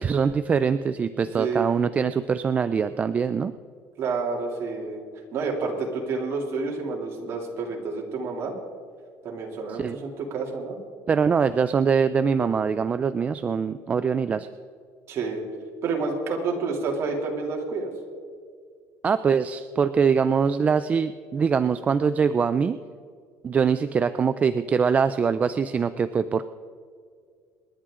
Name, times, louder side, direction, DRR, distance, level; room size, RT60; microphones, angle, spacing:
voice 1, 0.0-3.5 9.8-10.0 11.1-14.5 19.0-22.8 23.4-26.5, right 6 dB, 20° right, 11 dB, 0.3 m, -23 dB
voice 2, 1.4-1.7 4.0-5.0 5.3-8.5 9.2-10.8 15.1-15.4 15.8-17.9, right 4 dB, 40° right, -1 dB, 2.8 m, -29 dB
27.5 x 10.5 x 3.7 m, 2.2 s
cardioid pair, 175°, 7 cm